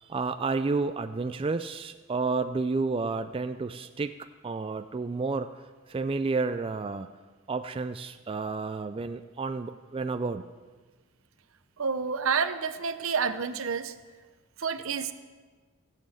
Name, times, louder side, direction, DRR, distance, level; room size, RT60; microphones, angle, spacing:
voice 1, 0.0-4.1 4.4-5.5 5.9-7.1 7.5-10.4, right 4 dB, 25° right, 9 dB, 0.3 m, -30 dB
voice 2, 11.8-13.9 14.6-15.1, right 5 dB, 75° right, 11 dB, 0.7 m, -29 dB
15.5 x 7.6 x 7.1 m, 1.4 s
head